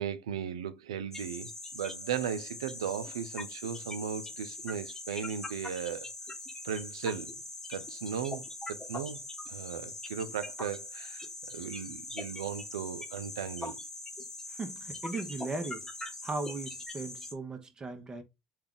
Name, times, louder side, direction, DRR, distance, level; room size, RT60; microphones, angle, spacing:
voice 1, 0.0-6.1 6.6-7.3 7.7-9.2 9.5-13.8, right 8 dB, 90° right, 0.3 m, -37 dB
sound 1, 1.1-17.3, left 2 dB, 20° left, 1.0 m, -42 dB
voice 2, 14.6-15.9 16.2-18.2, right 3 dB, 25° right, 0.9 m, -37 dB
3.5 x 2.3 x 3.7 m
hypercardioid pair, 80°, 3 cm